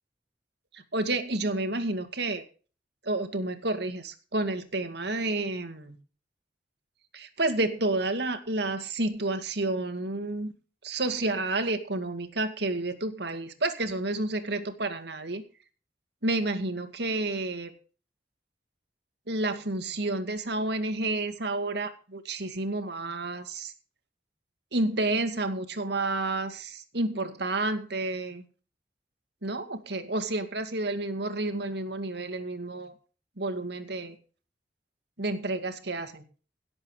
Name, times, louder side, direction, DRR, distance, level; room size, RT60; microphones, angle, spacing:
voice 1, 0.7-2.4 3.0-6.0 7.1-10.5 10.8-15.4 16.2-17.7 19.3-23.7 24.7-28.4 29.4-32.9 33.4-34.2 35.2-36.2, right 2 dB, 70° right, 9 dB, 2.2 m, -30 dB
17.5 x 7.7 x 4.9 m, 0.37 s
head